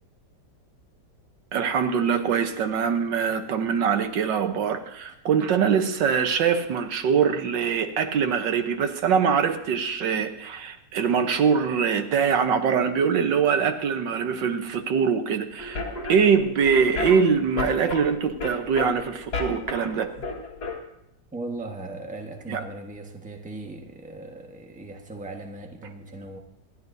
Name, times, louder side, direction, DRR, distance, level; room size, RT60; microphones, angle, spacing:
voice 1, 1.5-15.8 16.1-20.1 22.5-22.6, right 6 dB, 80° right, 8 dB, 1.6 m, -23 dB
sound 1, 15.6-20.8, left 3 dB, 65° left, 2.4 m, -33 dB
voice 2, 21.3-26.4, right 2 dB, 5° right, 2 dB, 1.1 m, -38 dB
26.0 x 11.0 x 2.7 m, 0.81 s
omnidirectional pair, 1.9 m